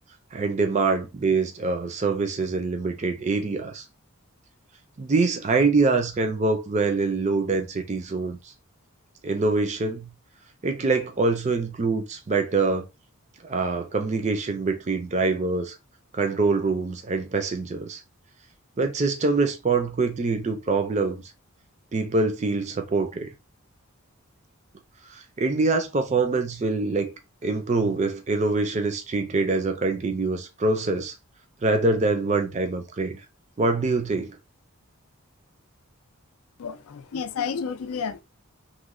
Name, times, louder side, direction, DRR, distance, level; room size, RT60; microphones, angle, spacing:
voice 1, 0.3-3.8 5.0-8.5 9.2-10.1 10.6-12.9 13.4-15.8 16.1-18.0 18.8-21.2 21.9-23.3 25.1-27.1 27.4-31.1 31.6-33.2 33.6-34.4, right 3 dB, 30° right, 0.4 m, -24 dB
voice 2, 36.6-38.2, left 6 dB, 80° left, 0.4 m, -31 dB
3.0 x 2.1 x 3.6 m
head